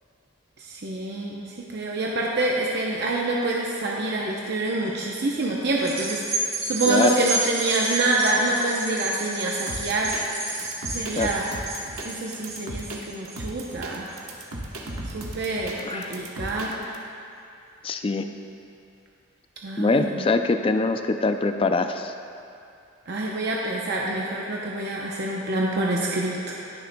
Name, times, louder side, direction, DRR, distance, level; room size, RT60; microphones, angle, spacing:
voice 1, 0.6-10.1 10.9-11.5 12.0-14.1 15.0-16.8 19.6-20.3 23.1-26.6, right 2 dB, 50° right, -3 dB, 0.7 m, -26 dB
sound 1, 5.8-14.5 14.9-15.0, right 3 dB, 30° right, 1.3 m, -31 dB
voice 2, 6.9-7.2 11.1-11.3 15.8-16.1 17.8-18.3 19.8-22.1, left 3 dB, 25° left, 7 dB, 0.3 m, -23 dB
sound 2, 9.7-17.0, right 1 dB, 90° right, 1.1 m, -36 dB
19.5 x 6.6 x 2.2 m, 2.6 s
head